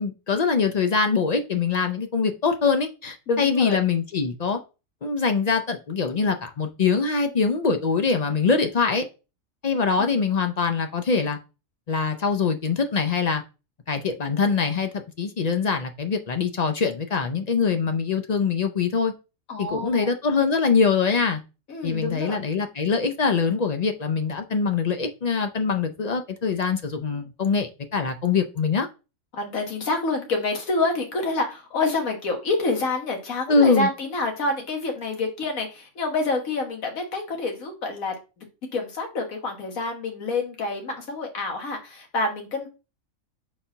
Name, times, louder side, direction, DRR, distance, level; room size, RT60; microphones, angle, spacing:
voice 1, 0.0-4.6 5.0-9.1 9.6-11.4 11.9-13.4 13.9-14.9 15.2-19.1 19.6-21.4 21.8-28.9 33.5-33.9, left 5 dB, 55° left, 0.4 m, -23 dB
voice 2, 3.3-3.8 10.0-10.1 19.5-20.1 21.7-22.4 29.3-38.2 38.7-42.7, left 3 dB, 85° left, 1.8 m, -27 dB
4.3 x 3.9 x 5.6 m
omnidirectional pair, 1.4 m